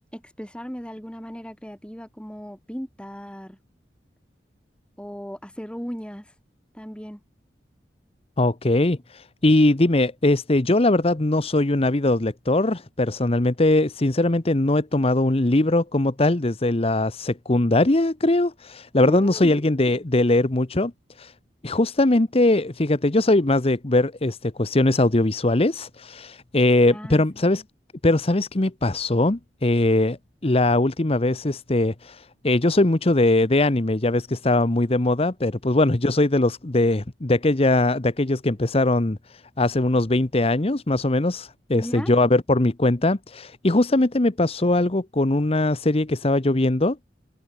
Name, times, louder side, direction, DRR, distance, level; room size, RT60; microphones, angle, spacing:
voice 1, 0.0-3.6 5.0-6.2 6.7-7.2 19.0-19.6 26.9-27.2 41.7-42.1, equal, 5° left, 4.5 m, -36 dB
voice 2, 8.4-20.9 21.2-21.3 21.6-27.6 28.0-30.2 30.4-47.0, left 2 dB, 35° left, 1.0 m, -21 dB
head